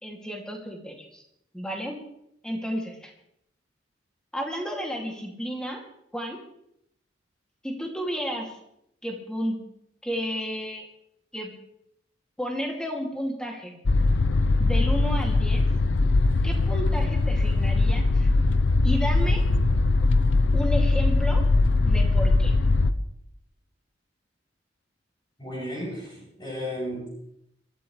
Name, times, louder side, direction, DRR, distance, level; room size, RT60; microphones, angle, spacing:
voice 1, 0.0-1.2 1.5-2.0 2.4-3.1 4.3-5.8 6.1-6.4 7.6-8.6 9.0-9.6 10.0-10.8 11.3-11.5 12.4-13.8 14.6-15.7 16.4-18.3 18.8-19.4 20.5-21.4 21.8-22.6, equal, 5° left, 1 dB, 2.5 m, -32 dB
sound 1, 13.9-22.9, left 3 dB, 75° left, 0.6 m, -21 dB
voice 2, 25.4-27.1, equal, 25° left, -6 dB, 7.3 m, -34 dB
24.5 x 13.0 x 3.3 m, 0.75 s
head